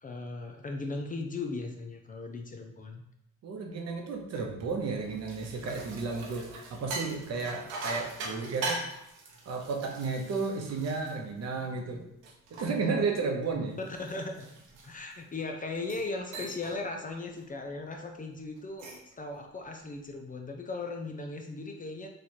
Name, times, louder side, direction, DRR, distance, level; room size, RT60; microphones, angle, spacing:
voice 1, 0.0-3.0 13.6-13.7 14.0-14.5 14.8-22.1, left 3 dB, 25° left, 3 dB, 0.5 m, -38 dB
voice 2, 3.4-8.8 9.5-12.1 12.5-13.8, right 4 dB, 55° right, 2 dB, 0.8 m, -33 dB
sound 1, 5.0-11.8 12.2-15.2 15.7-16.1 16.3-16.8 17.1-17.4 18.6-19.1, right 2 dB, 85° right, 0.8 m, -41 dB
3.0 x 2.4 x 4.2 m, 0.80 s
cardioid pair, 90°, 30 cm